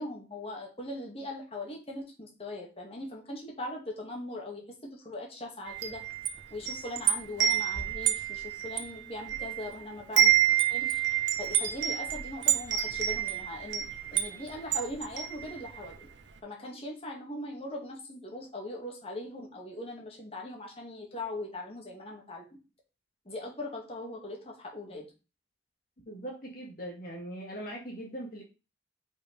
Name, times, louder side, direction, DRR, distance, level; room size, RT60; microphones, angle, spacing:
voice 1, 0.0-6.0 6.5-10.3 10.7-11.0 11.4-13.8 14.1-16.1 16.4-22.4 23.3-25.1, left 1 dB, 30° left, -1 dB, 2.0 m, -40 dB
Wind chime, 5.7-9.7 10.0-15.9, right 11 dB, 75° right, 0.9 m, -28 dB
voice 2, 26.1-28.4, right 1 dB, 50° left, -1 dB, 1.7 m, -40 dB
5.3 x 5.1 x 5.2 m, 0.31 s
head